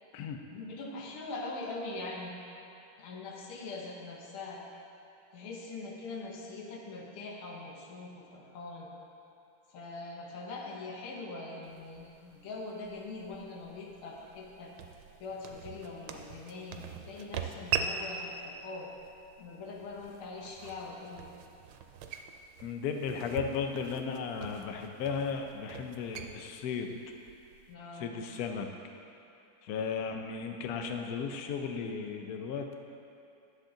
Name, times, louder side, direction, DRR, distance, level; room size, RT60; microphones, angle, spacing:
voice 1, 0.5-2.4 3.0-4.6 5.3-8.9 9.7-14.7 15.2-18.9 19.4-21.3 27.7-28.2, left 3 dB, 90° left, 0 dB, 1.9 m, -42 dB
sound 1, 11.6-27.7, right 7 dB, 90° right, 1.5 m, -42 dB
voice 2, 22.6-26.9 28.0-28.7 29.6-32.7, left 6 dB, 70° left, 4 dB, 0.9 m, -35 dB
10.0 x 7.2 x 3.8 m, 2.7 s
omnidirectional pair, 2.2 m